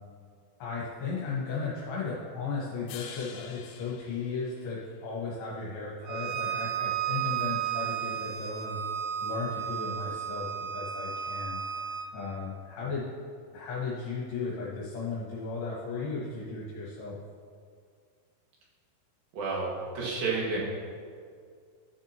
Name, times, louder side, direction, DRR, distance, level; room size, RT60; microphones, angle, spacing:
voice 1, 0.6-8.8 9.2-13.1 13.5-17.2, left 4 dB, 70° left, -6 dB, 3.1 m, -35 dB
sound 1, 2.9-5.2, left 7 dB, 85° left, 2.2 m, -47 dB
Bowed string instrument, 6.1-12.1, right 9 dB, 90° right, 3.3 m, -33 dB
voice 2, 19.3-20.6, right 4 dB, 60° right, -5 dB, 3.4 m, -30 dB
13.0 x 7.1 x 2.9 m, 2.1 s
omnidirectional pair, 5.0 m